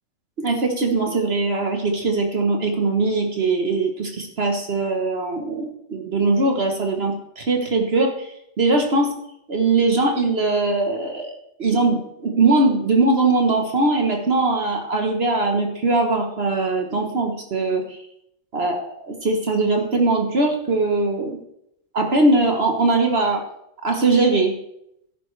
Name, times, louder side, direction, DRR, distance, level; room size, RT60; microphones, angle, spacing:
voice 1, 0.4-9.1 9.5-18.0 18.5-18.8 19.1-21.4 21.9-23.4 23.8-24.5, right 3 dB, 55° right, 3 dB, 1.4 m, -21 dB
13.0 x 11.0 x 3.3 m, 0.77 s
omnidirectional pair, 1.3 m